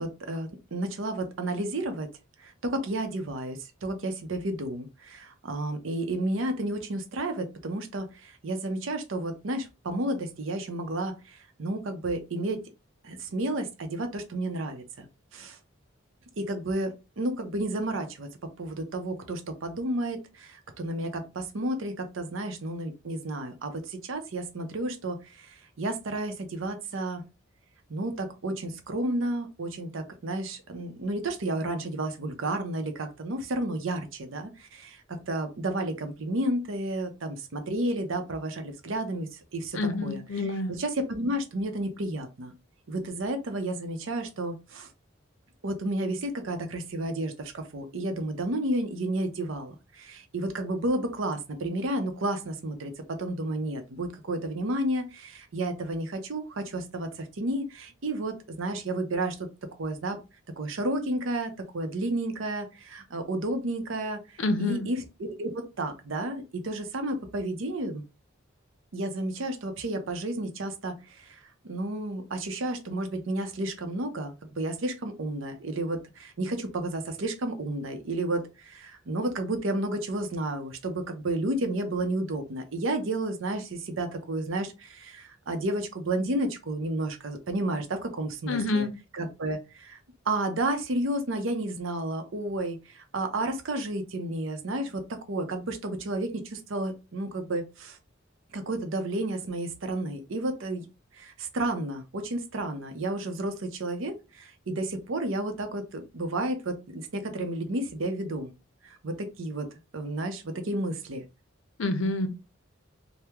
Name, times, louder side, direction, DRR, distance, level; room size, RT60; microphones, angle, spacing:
voice 1, 0.0-2.1 2.4-12.6 13.0-15.1 15.3-15.6 16.4-18.3 18.6-27.2 27.9-40.2 40.8-42.5 42.9-44.9 45.6-59.5 59.8-60.2 60.6-64.2 64.6-68.0 68.9-71.4 71.6-88.9 89.1-90.0 90.3-98.0 98.5-100.8 101.1-108.5 108.8-109.7 109.9-111.3, right 1 dB, 75° right, 0.6 m, -31 dB
voice 2, 39.7-40.8 64.4-64.9 88.5-88.9 111.8-112.3, left 2 dB, 70° left, 0.6 m, -27 dB
3.5 x 2.1 x 2.9 m
head